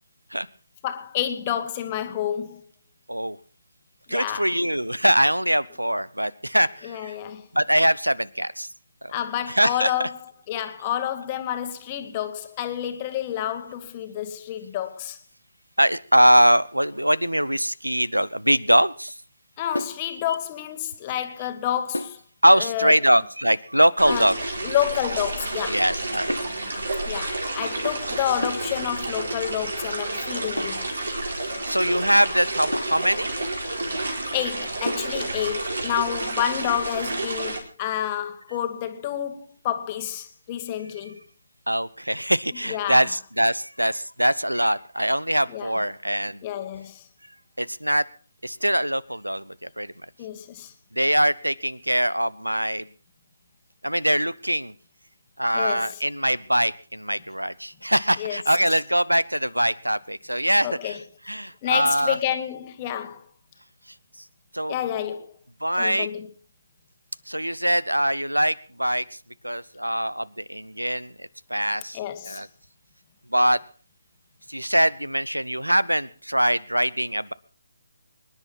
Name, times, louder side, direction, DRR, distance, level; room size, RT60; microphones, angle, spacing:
voice 1, 0.8-2.6 4.1-4.5 6.8-7.5 9.1-10.2 10.5-15.2 19.6-22.2 22.5-22.9 24.1-24.3 24.6-25.8 27.0-30.9 34.3-41.2 42.7-43.1 45.5-45.8 46.4-47.0 50.2-50.7 55.5-56.0 58.2-58.4 60.6-61.0 61.6-63.2 64.7-65.3 65.8-66.3 71.9-72.4, left 11 dB, 20° left, 1.5 m, -29 dB
voice 2, 4.1-7.2 7.5-8.7 9.0-9.1 9.5-10.1 15.8-19.2 20.3-20.4 22.4-24.4 25.7-26.4 28.9-29.0 31.6-33.3 41.7-46.4 47.6-48.0 48.4-49.9 50.9-52.9 53.8-54.7 55.4-61.0 61.2-62.2 64.5-64.8 65.6-66.1 67.3-69.0 69.4-72.0 72.2-72.5 73.3-73.6 74.5-77.3, equal, 85° right, 0.8 m, -22 dB
sound 1, 19.7-20.1 21.9-22.2 24.1-24.4 26.3-26.6 28.4-28.7 30.6-30.9 32.7-33.0 34.9-35.2, left 1 dB, 85° left, 1.3 m, -30 dB
sound 2, 24.0-37.6, right 2 dB, 65° right, 4.2 m, -30 dB
25.5 x 10.5 x 4.3 m
figure-of-eight pair, 150°, 0 cm